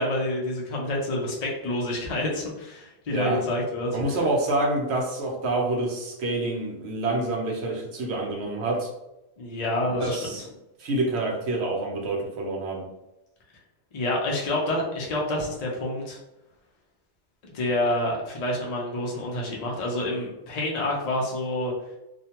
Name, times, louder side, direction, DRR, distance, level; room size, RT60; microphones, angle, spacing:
voice 1, 0.0-4.0 9.4-10.2 13.9-16.2 17.4-21.7, left 1 dB, 60° left, -2 dB, 0.4 m, -28 dB
voice 2, 3.1-3.4 3.9-8.9 9.8-10.4 10.8-12.9, right 2 dB, 60° right, 0 dB, 0.8 m, -27 dB
2.4 x 2.2 x 2.8 m, 0.91 s
omnidirectional pair, 1.4 m